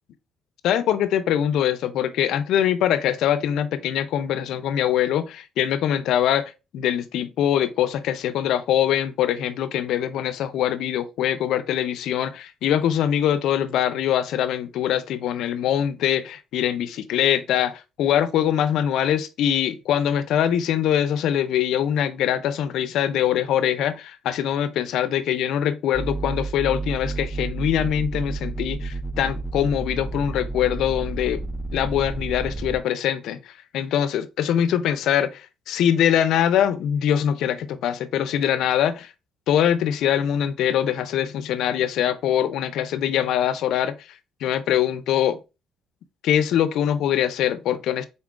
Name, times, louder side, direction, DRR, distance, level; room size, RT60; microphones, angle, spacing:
voice 1, 0.6-31.4 31.7-39.1 39.5-43.9 44.4-45.4 46.2-48.1, left 10 dB, 75° left, 0.4 m, -23 dB
sound 1, 25.9-32.8, right 3 dB, 5° right, 0.3 m, -31 dB
4.0 x 3.6 x 2.3 m
cardioid pair, 95°, 0 cm